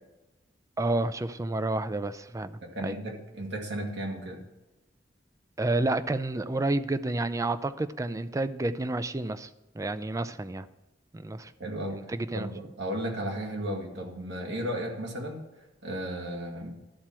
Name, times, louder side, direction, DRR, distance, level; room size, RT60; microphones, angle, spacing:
voice 1, 0.8-3.0 5.6-9.5 9.7-10.7 11.1-11.5 11.9-12.5, right 2 dB, 20° right, 13 dB, 0.4 m, -30 dB
voice 2, 2.6-4.4 11.6-12.0 12.3-15.5 15.8-16.8, right 1 dB, 70° right, 1 dB, 1.9 m, -34 dB
12.0 x 4.3 x 6.1 m, 1.0 s
head